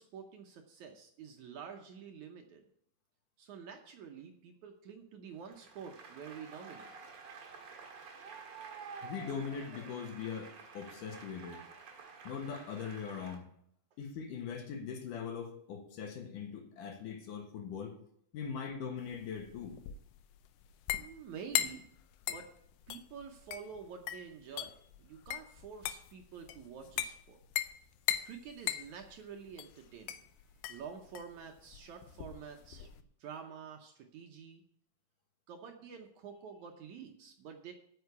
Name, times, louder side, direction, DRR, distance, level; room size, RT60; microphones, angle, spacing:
voice 1, 0.0-2.6 3.4-6.9 21.0-21.8 22.3-22.5 22.9-27.4 28.2-30.2 30.7-32.9 33.2-34.6 35.5-37.7, right 7 dB, 70° right, 3 dB, 2.0 m, -48 dB
Applause, 5.4-13.4, right 5 dB, 45° right, 2.3 m, -50 dB
voice 2, 9.0-11.6 12.2-13.5 14.0-18.0 18.3-19.8, left 6 dB, 70° left, 3 dB, 2.9 m, -41 dB
sound 1, 19.1-33.0, left 12 dB, 90° left, 2.5 m, -39 dB
9.3 x 6.7 x 8.2 m, 0.68 s
omnidirectional pair, 4.1 m